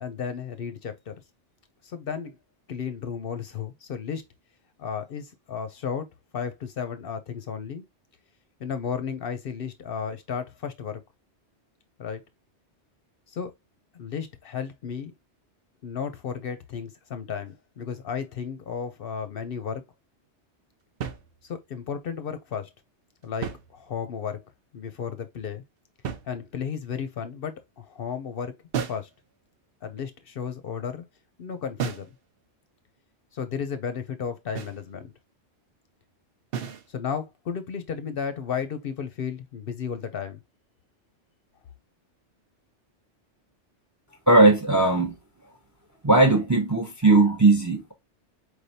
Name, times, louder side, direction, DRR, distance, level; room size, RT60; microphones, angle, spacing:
voice 1, 0.0-1.1 1.8-2.4 2.7-4.2 4.8-6.1 6.3-7.8 8.6-11.0 12.0-12.2 13.3-13.5 13.9-15.1 15.8-19.8 21.4-22.7 23.2-24.4 24.7-25.6 26.3-28.5 28.9-29.1 29.8-31.0 31.4-32.1 33.3-35.1 36.9-40.4, left 7 dB, 60° left, 0.7 m, -33 dB
sound 1, 21.0-21.8 23.2-24.3 26.0-26.8 28.7-29.2 31.8-32.2 34.6-34.9 36.5-36.9, right 7 dB, 60° right, 0.8 m, -34 dB
voice 2, 44.3-45.2 46.0-47.9, right 2 dB, 20° right, 0.5 m, -18 dB
4.7 x 3.2 x 2.7 m
omnidirectional pair, 1.2 m